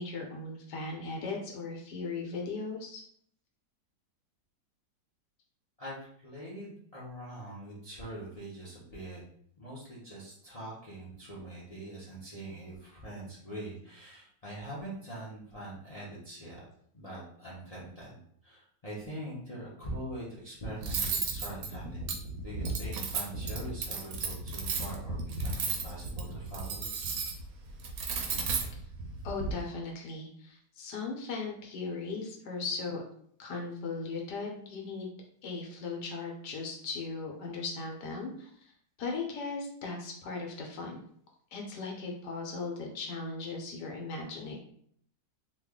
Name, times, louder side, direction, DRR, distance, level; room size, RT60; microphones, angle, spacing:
voice 1, 0.0-3.0 29.2-33.0 33.4-35.1 35.4-38.7 39.0-41.0 41.5-44.6, left 4 dB, 75° left, 0 dB, 1.3 m, -38 dB
voice 2, 5.8-9.2 9.6-16.7 16.9-22.2 22.4-26.9, right 1 dB, 50° left, -7 dB, 0.4 m, -43 dB
Cutlery silverware, 20.8-29.5, right 4 dB, 70° right, 0.9 m, -34 dB
3.0 x 2.3 x 3.5 m, 0.64 s
omnidirectional pair, 1.9 m